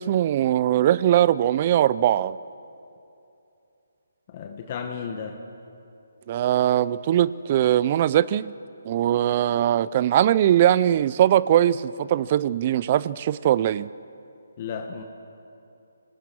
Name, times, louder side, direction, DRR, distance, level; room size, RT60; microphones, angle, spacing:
voice 1, 0.0-2.4 6.3-8.5 8.8-13.9, right 11 dB, 35° right, 19 dB, 0.5 m, -21 dB
voice 2, 4.3-5.4 14.6-15.0, left 6 dB, 35° left, 4 dB, 1.4 m, -33 dB
26.0 x 19.0 x 6.2 m, 2.7 s
hypercardioid pair, 155°, 0 cm